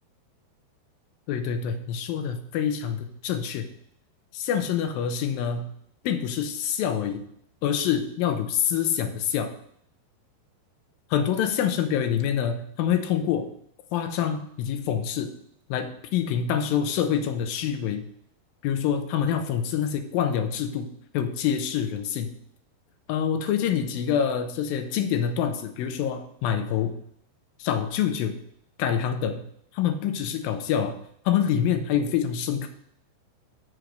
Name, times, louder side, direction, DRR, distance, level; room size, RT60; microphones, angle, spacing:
voice 1, 1.3-3.7 4.3-5.7 6.0-7.2 7.6-9.5 11.1-13.5 13.9-15.3 15.7-18.1 18.6-20.9 21.1-22.3 23.1-27.0 27.6-28.4 28.8-29.5 29.7-31.0 31.3-32.7, left 8 dB, 75° left, 7 dB, 2.3 m, -26 dB
10.5 x 4.7 x 6.4 m, 0.69 s
omnidirectional pair, 4.9 m